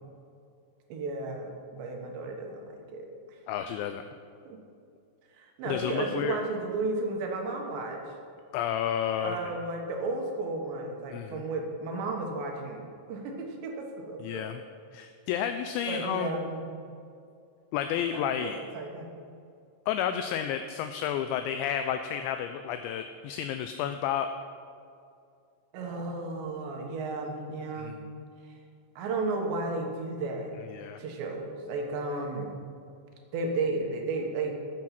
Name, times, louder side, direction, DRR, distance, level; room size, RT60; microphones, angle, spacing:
voice 1, 0.9-3.4 4.4-4.6 5.4-8.0 9.2-14.5 15.9-16.8 18.1-19.1 25.7-28.0 29.0-30.6 31.0-32.6 33.3-34.5, right 3 dB, 70° right, 2 dB, 3.4 m, -33 dB
voice 2, 3.5-4.0 5.7-6.4 8.5-9.4 11.1-11.4 14.2-14.6 14.9-16.3 17.7-18.6 19.9-24.3 27.8-28.1 30.7-31.0, left 9 dB, 85° left, 8 dB, 2.6 m, -31 dB
13.0 x 8.6 x 5.9 m, 2.4 s
omnidirectional pair, 5.6 m